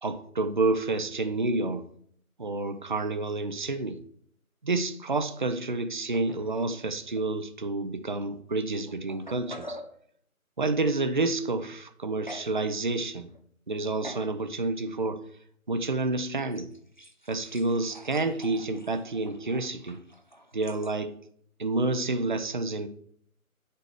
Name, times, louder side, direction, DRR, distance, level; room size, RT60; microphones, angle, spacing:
voice 1, 0.0-1.9 2.4-4.0 4.6-9.8 10.6-13.3 13.7-15.2 15.7-16.7 17.3-20.0 20.5-21.2 21.6-22.9, right 3 dB, 35° right, 0.6 m, -29 dB
sound 1, 6.1-6.8 7.1-7.2 8.1-8.2 8.9-10.0 12.3-12.6 13.0-13.4 14.0-14.4 14.9-15.1 16.5-21.0, equal, 35° left, 0.4 m, -46 dB
8.7 x 6.8 x 4.8 m
figure-of-eight pair, 155°, 43 cm